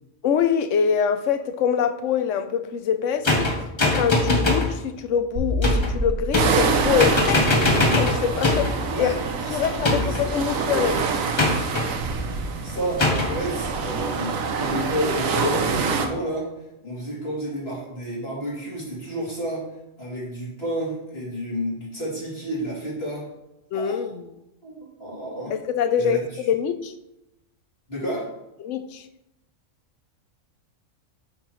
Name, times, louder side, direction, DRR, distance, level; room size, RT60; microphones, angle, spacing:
voice 1, 0.2-3.5 3.9-7.7 8.0-9.2 9.5-10.9 23.7-24.2 25.5-26.9 28.6-29.0, left 7 dB, 70° left, 1.0 m, -24 dB
sound 1, 3.2-4.7 5.6-5.9 6.3-6.7 7.0-8.8 9.8-10.3 11.4-11.9 13.0-13.3, left 2 dB, 25° left, 1.0 m, -21 dB
sound 2, 5.4-12.6, equal, 70° right, 1.9 m, -32 dB
sound 3, 6.4-16.1, right 5 dB, 90° right, 1.2 m, -26 dB
voice 2, 9.4-10.9 12.3-16.5 16.8-19.7 20.0-23.3 23.7-24.1 24.6-25.5 26.0-26.4 27.9-28.3, equal, 50° left, 3.1 m, -31 dB
8.7 x 5.9 x 3.1 m
omnidirectional pair, 1.4 m